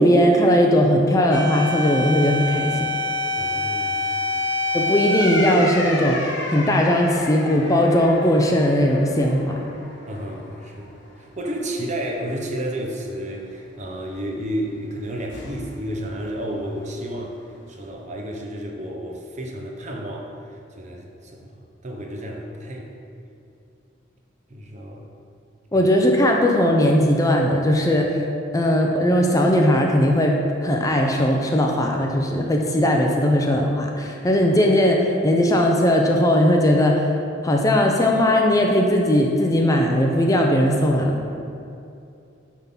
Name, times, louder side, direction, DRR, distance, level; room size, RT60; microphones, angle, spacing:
voice 1, 0.0-2.9 4.7-9.6 25.7-28.2 28.5-37.1 37.4-41.2, equal, 15° left, 1 dB, 0.5 m, -18 dB
sound 1, 1.3-10.0 10.3-10.4 15.3-15.8, left 2 dB, 60° left, 1.2 m, -27 dB
voice 2, 3.3-4.5 10.1-17.4 17.7-23.0 24.5-25.0 25.7-25.9, right 1 dB, 35° right, 0 dB, 0.9 m, -32 dB
9.1 x 3.7 x 5.7 m, 2.6 s
head